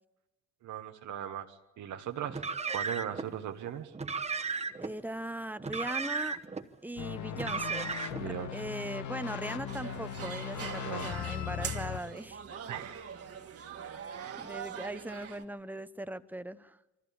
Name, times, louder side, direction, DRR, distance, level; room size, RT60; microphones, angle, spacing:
voice 1, 0.6-2.4 2.7-3.9 8.2-8.5 10.8-11.1 12.7-13.1 14.1-14.5, right 10 dB, 75° right, 6 dB, 1.2 m, -39 dB
Car, 2.3-3.3 3.9-4.9 5.6-6.6 7.3-8.3, right 5 dB, 20° right, 1.1 m, -35 dB
voice 2, 4.8-6.4 6.8-12.4 14.4-16.8, right 1 dB, 5° right, 13 dB, 0.7 m, -39 dB
sound 1, 7.0-12.0, left 10 dB, 80° left, 1.2 m, -38 dB
sound 2, 9.7-15.4, right 7 dB, 50° right, 1.6 m, -43 dB
23.5 x 14.5 x 8.5 m, 1.1 s
cardioid pair, 90°, 30 cm